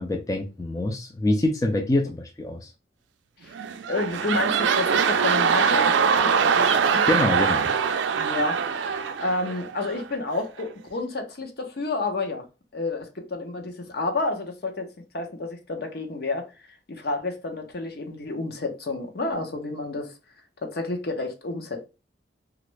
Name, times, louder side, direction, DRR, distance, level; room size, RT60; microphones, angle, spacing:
voice 1, 0.0-2.7 7.1-7.7, left 1 dB, 20° left, 0.4 m, -25 dB
sound 1, 3.5-10.1 10.6-10.7, right 6 dB, 90° right, 0.4 m, -23 dB
voice 2, 3.9-7.0 8.1-12.4 12.7-14.9 15.1-16.5 16.9-20.1 20.6-21.9, left 2 dB, 60° left, 0.7 m, -30 dB
3.0 x 2.4 x 3.1 m
head